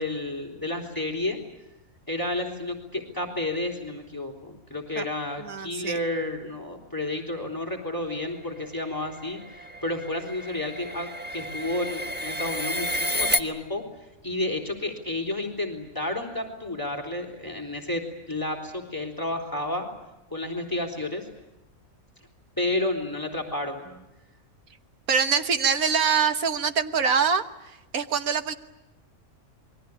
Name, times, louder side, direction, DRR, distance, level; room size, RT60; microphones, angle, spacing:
voice 1, 0.0-1.4 2.1-13.8 14.2-19.9 20.3-21.3 22.6-23.9, left 2 dB, 15° left, 4 dB, 3.8 m, -31 dB
voice 2, 5.4-6.0 25.1-27.4 27.9-28.5, right 6 dB, 80° right, 9 dB, 1.8 m, -24 dB
sound 1, 8.6-13.4, equal, 10° right, 1.2 m, -31 dB
27.5 x 22.5 x 8.6 m, 0.94 s
omnidirectional pair, 1.5 m